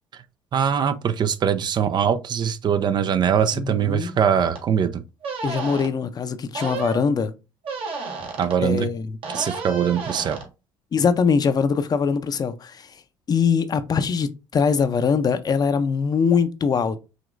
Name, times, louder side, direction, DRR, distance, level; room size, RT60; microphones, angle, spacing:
voice 1, 0.5-5.0 8.4-8.9 9.3-10.4, right 8 dB, 45° right, 0.5 m, -22 dB
voice 2, 3.5-4.2 5.4-7.3 8.6-9.2 10.9-13.0 13.3-17.0, left 6 dB, 40° left, 0.6 m, -22 dB
sound 1, 4.5-4.6 5.2-5.9 6.5-7.0 7.6-8.6 9.2-10.5, right 4 dB, 60° right, 1.5 m, -31 dB
5.0 x 2.9 x 2.5 m
hypercardioid pair, 70°, 11 cm